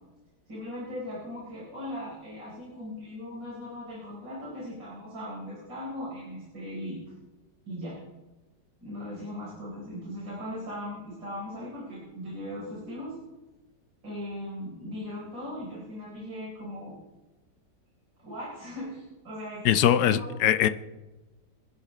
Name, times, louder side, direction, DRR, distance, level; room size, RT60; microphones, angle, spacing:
voice 1, 0.5-7.0 7.7-8.0 8.8-13.2 14.0-17.0 18.2-20.3, left 1 dB, 90° right, -6 dB, 5.0 m, -38 dB
voice 2, 19.6-20.7, left 10 dB, 70° left, 12 dB, 1.1 m, -21 dB
25.0 x 11.5 x 3.2 m, 1.1 s
omnidirectional pair, 2.0 m